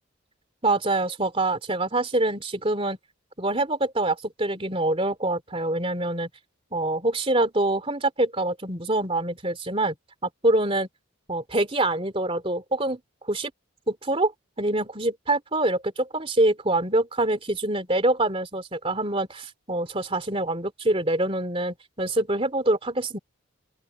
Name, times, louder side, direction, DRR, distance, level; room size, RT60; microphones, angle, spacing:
voice 1, 0.6-3.0 3.4-6.3 6.7-9.9 10.2-10.9 11.3-13.0 13.3-13.5 13.9-14.3 14.6-23.2, right 2 dB, 25° right, 3.3 m, -25 dB
open air
head